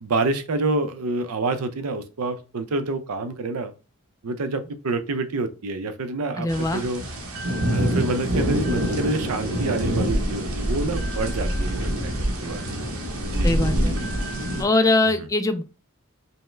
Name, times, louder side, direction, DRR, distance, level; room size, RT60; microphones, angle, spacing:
voice 1, 0.0-3.7 4.2-7.1 7.7-12.6 13.2-13.7, right 3 dB, 90° right, 10 dB, 0.6 m, -27 dB
voice 2, 6.4-6.8 13.4-13.9 14.6-15.6, left 2 dB, 15° left, 9 dB, 0.3 m, -22 dB
sound 1, 6.5-14.6, equal, 70° right, 1.0 m, -25 dB
5.4 x 2.1 x 3.2 m, 0.33 s
head